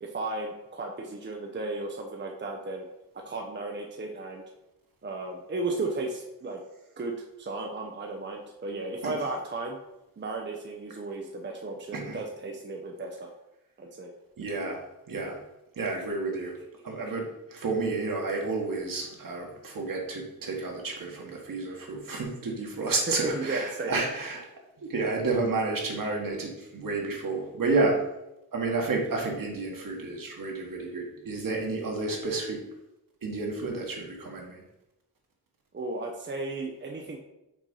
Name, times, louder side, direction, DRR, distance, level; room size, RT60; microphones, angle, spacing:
voice 1, 0.0-2.9 3.1-4.4 5.0-6.6 7.0-9.8 10.2-13.3 13.8-14.1 16.0-16.1 16.6-16.7 23.1-24.0 35.7-37.2, right 2 dB, 30° right, 2 dB, 0.7 m, -34 dB
voice 2, 14.4-14.8 15.1-15.4 15.8-16.5 16.8-24.4 24.8-28.0 28.5-32.6 33.2-34.6, right 3 dB, 60° right, 0 dB, 1.6 m, -30 dB
6.0 x 4.2 x 5.4 m, 0.91 s
wide cardioid pair, 155°, 38 cm